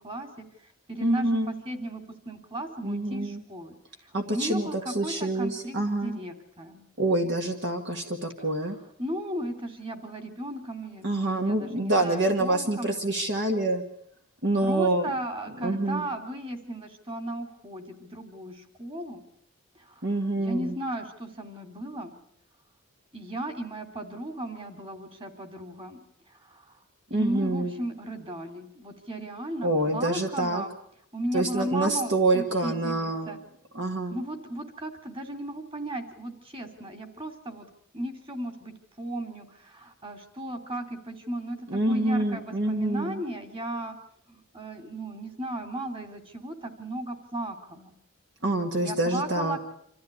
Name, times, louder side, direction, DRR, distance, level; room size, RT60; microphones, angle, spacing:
voice 1, 0.0-6.9 9.0-13.0 14.6-19.2 19.7-22.1 23.1-26.0 26.3-26.8 27.1-30.7 31.1-33.4 34.1-37.7 37.9-44.0 44.3-47.9 48.7-49.6, right 1 dB, 25° right, 6 dB, 2.8 m, -36 dB
voice 2, 1.0-1.5 2.8-3.4 4.1-6.2 7.0-8.8 11.0-13.8 14.4-15.1 15.6-16.0 20.0-20.7 27.1-27.7 29.6-30.6 31.3-33.3 33.7-34.2 41.7-43.2 48.4-49.6, right 2 dB, 55° right, 3 dB, 1.9 m, -26 dB
26.5 x 14.5 x 9.6 m, 0.71 s
head